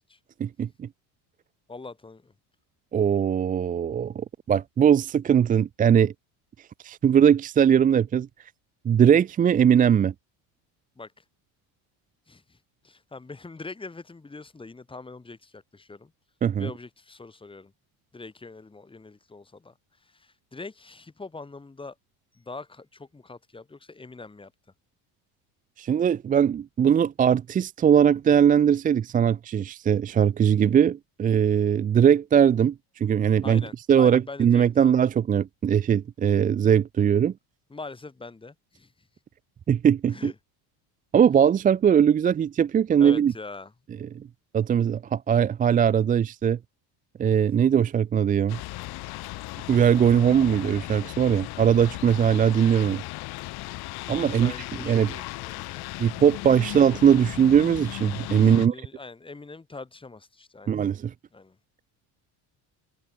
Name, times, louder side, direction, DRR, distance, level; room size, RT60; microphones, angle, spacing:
voice 1, 0.4-0.9 2.9-6.1 6.8-8.3 8.8-10.1 16.4-16.7 25.8-37.3 39.7-40.3 41.1-43.3 44.0-44.2 44.5-46.6 47.2-48.6 49.7-53.0 54.1-54.5 54.8-55.2 56.0-58.8 60.7-61.1, right 8 dB, 20° right, 0.5 m, -20 dB
voice 2, 1.7-2.3 11.0-11.2 12.3-12.6 12.8-16.1 16.6-17.7 18.1-19.7 20.0-22.0 22.3-24.5 33.4-35.0 37.7-38.9 40.1-40.3 43.0-43.7 54.2-55.9 58.4-60.8 61.3-61.6, left 3 dB, 10° left, 5.6 m, -42 dB
sound 1, 48.5-58.7, left 20 dB, 55° left, 1.6 m, -36 dB
cardioid pair, 160°, 44 cm